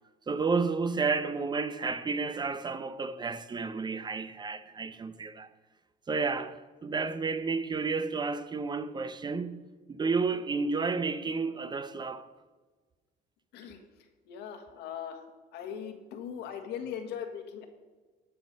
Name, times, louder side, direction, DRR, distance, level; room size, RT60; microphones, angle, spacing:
voice 1, 0.3-5.5 6.1-9.6 9.9-12.3, right 4 dB, 25° right, 0.7 m, -31 dB
voice 2, 14.3-15.2 15.5-17.7, left 8 dB, 85° left, 1.7 m, -39 dB
13.5 x 6.0 x 5.3 m
cardioid pair, 110°, 17 cm